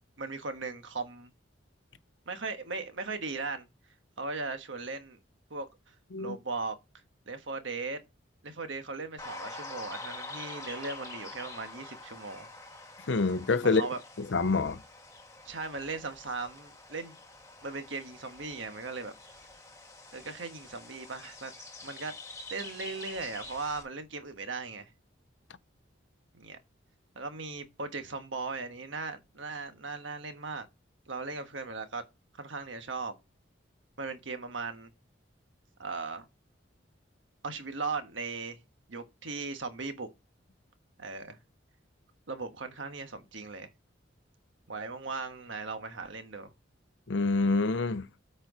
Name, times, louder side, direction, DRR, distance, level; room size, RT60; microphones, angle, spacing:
voice 1, 0.2-1.3 2.3-3.7 4.2-5.2 5.5-5.7 6.2-6.8 7.3-8.0 8.4-12.5 13.6-14.0 15.4-17.2 17.6-19.1 20.1-21.5 21.8-22.1 22.5-24.9 26.3-26.6 27.1-30.7 31.1-32.0 32.4-33.2 34.0-34.9 35.8-36.3 37.4-38.6 38.9-40.1 41.0-41.4 42.3-43.7 44.7-46.5, right 3 dB, 75° right, 1.3 m, -38 dB
sound 1, 9.2-23.8, left 3 dB, 15° left, 1.3 m, -46 dB
voice 2, 13.1-13.8 14.2-14.8 47.1-48.1, left 3 dB, 70° left, 0.6 m, -26 dB
8.6 x 4.6 x 4.9 m
head